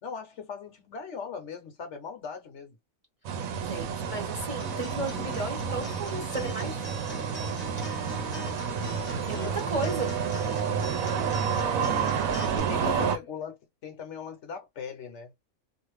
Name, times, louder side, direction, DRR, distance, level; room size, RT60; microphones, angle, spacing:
voice 1, 0.0-2.8 9.3-9.6 11.6-12.2 12.6-15.3, left 6 dB, 60° left, 0.9 m, -39 dB
sound 1, 3.2-13.2, right 7 dB, 80° right, 1.0 m, -30 dB
voice 2, 3.6-6.8 9.3-10.1 12.8-13.1, right 2 dB, 30° right, 0.8 m, -34 dB
Acoustic guitar, 4.6-12.6, equal, 10° left, 0.7 m, -41 dB
2.5 x 2.5 x 3.1 m
omnidirectional pair, 1.4 m